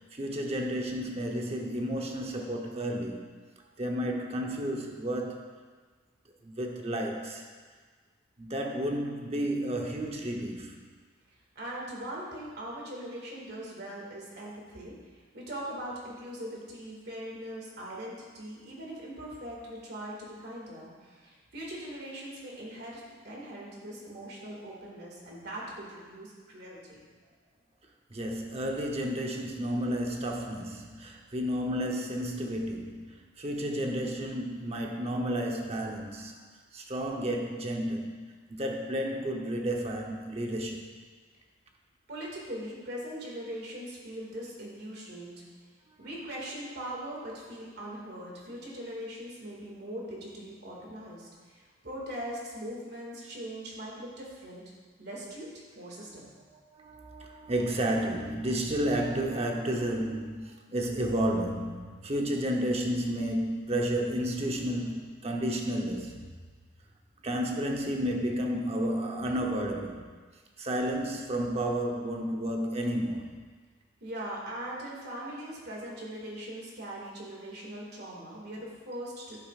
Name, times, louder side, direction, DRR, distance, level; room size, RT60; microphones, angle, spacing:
voice 1, 0.0-3.3 3.8-5.4 6.4-7.5 8.4-10.8 28.1-36.4 36.7-40.8 56.5-66.4 67.2-70.1 70.6-73.3, equal, 35° right, 1 dB, 0.9 m, -32 dB
voice 2, 11.6-27.1 42.1-45.4 46.0-54.6 55.0-56.3 74.0-79.4, right 1 dB, 60° right, -3 dB, 2.1 m, -41 dB
11.0 x 8.5 x 2.5 m, 1.5 s
head